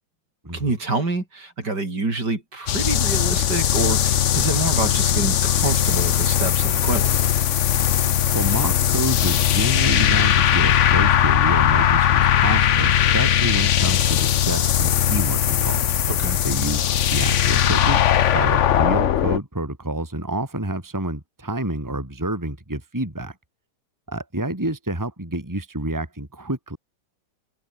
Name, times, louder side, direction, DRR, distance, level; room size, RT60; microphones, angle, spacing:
voice 1, 0.5-7.1 16.1-16.4, right 3 dB, 50° right, 5.1 m, -27 dB
sound 1, 2.7-19.4, left 10 dB, 85° left, 0.6 m, -19 dB
voice 2, 8.3-15.9 16.4-23.3 24.1-26.8, right 1 dB, 10° right, 3.2 m, -28 dB
omnidirectional pair, 2.3 m